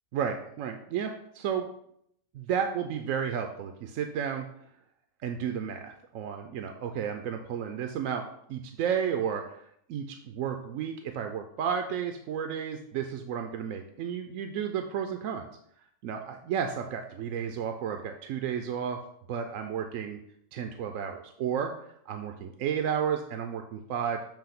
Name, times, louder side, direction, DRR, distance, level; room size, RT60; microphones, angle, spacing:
voice 1, 0.1-1.7 2.3-4.5 5.2-15.5 16.0-19.0 19.3-20.2 20.5-24.2, right 8 dB, 80° right, 5 dB, 1.0 m, -32 dB
6.9 x 3.0 x 5.8 m, 0.70 s
omnidirectional pair, 1.4 m